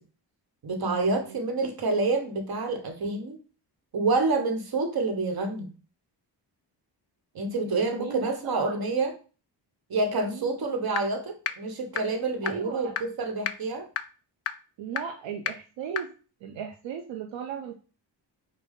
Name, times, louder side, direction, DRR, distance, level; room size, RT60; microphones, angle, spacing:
voice 1, 0.6-3.4 3.9-5.7 7.3-9.1 9.9-13.9, right 3 dB, 55° right, 4 dB, 1.1 m, -28 dB
voice 2, 7.7-8.9 10.2-10.6 12.4-12.9 14.8-16.1 16.4-17.7, right 7 dB, 80° right, 3 dB, 0.7 m, -37 dB
sound 1, 11.0-11.1 11.5-11.6 12.0-12.1 12.5-12.6 13.0-13.1 13.5-13.6 14.0-14.1 14.5-14.6 15.0-15.1 15.5-15.6 16.0-16.1, left 8 dB, 35° left, 0.4 m, -28 dB
5.3 x 2.2 x 3.6 m, 0.35 s
cardioid pair, 65°, 45 cm